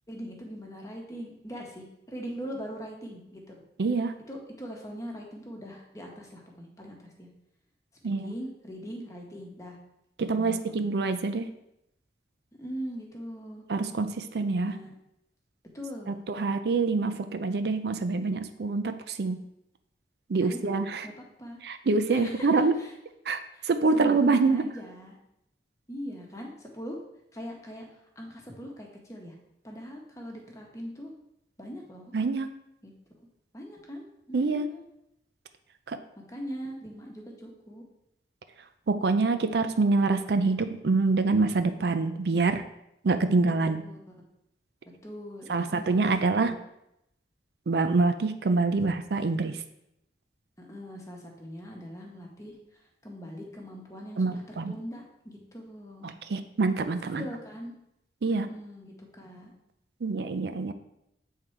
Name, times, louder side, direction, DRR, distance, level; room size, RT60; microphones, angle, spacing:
voice 1, 0.1-3.5 4.3-7.3 8.2-9.8 10.2-10.8 12.6-13.6 14.6-14.9 15.7-16.3 20.4-21.6 22.1-22.5 22.7-22.9 23.5-25.2 25.9-27.0 27.3-27.8 28.2-29.3 29.6-31.1 31.6-32.1 32.8-32.9 33.5-34.8 36.3-37.8 43.5-44.1 45.0-46.5 50.6-52.6 53.0-56.1 57.1-57.7 58.2-59.5, equal, 20° left, 0 dB, 1.1 m, -41 dB
voice 2, 3.8-4.1 8.0-8.3 10.2-11.5 13.7-14.7 16.1-19.4 20.3-21.0 21.6-22.8 23.3-23.4 23.7-24.7 32.1-32.5 34.3-34.7 35.9-36.0 38.9-42.6 43.0-43.8 45.5-46.6 47.7-49.6 54.2-54.7 56.0-57.2 58.2-58.5 60.0-60.7, right 3 dB, 65° right, 9 dB, 0.4 m, -26 dB
8.0 x 3.7 x 4.5 m, 0.81 s
head